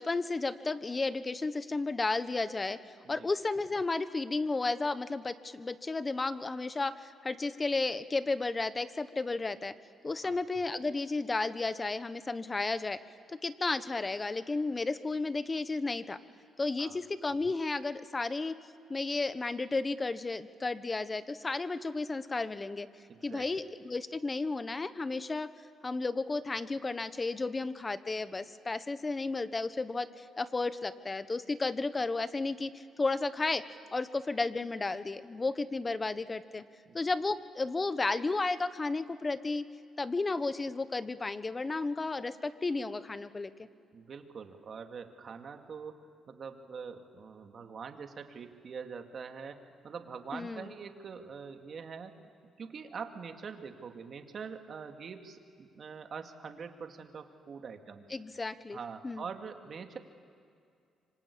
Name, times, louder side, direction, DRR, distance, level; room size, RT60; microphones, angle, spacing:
voice 1, 0.0-2.8 3.1-9.7 10.0-13.0 13.3-16.2 16.6-18.5 18.9-22.9 23.2-25.5 25.8-33.6 33.9-36.6 36.9-39.6 40.0-43.7 50.3-50.7 58.1-58.8 59.0-59.3, left 3 dB, 25° left, 13 dB, 1.2 m, -33 dB
voice 2, 23.1-23.5 36.9-37.0 43.9-46.0 46.3-52.2 52.6-58.1 58.7-60.0, right 6 dB, 50° right, 5 dB, 2.3 m, -44 dB
25.5 x 25.5 x 8.6 m, 2.4 s
cardioid pair, 90°, 0 cm